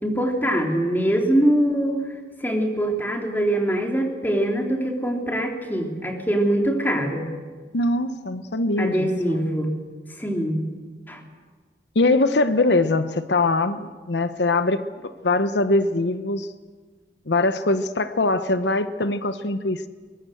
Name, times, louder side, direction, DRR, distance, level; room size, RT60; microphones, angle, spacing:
voice 1, 0.0-2.0 2.4-7.3 8.8-9.8 10.2-10.7 11.1-11.2, right 1 dB, 10° left, 2 dB, 3.3 m, -23 dB
voice 2, 7.7-9.4 11.9-16.5 17.3-19.9, left 2 dB, 80° left, 11 dB, 0.9 m, -22 dB
23.0 x 22.0 x 7.8 m, 1.5 s
head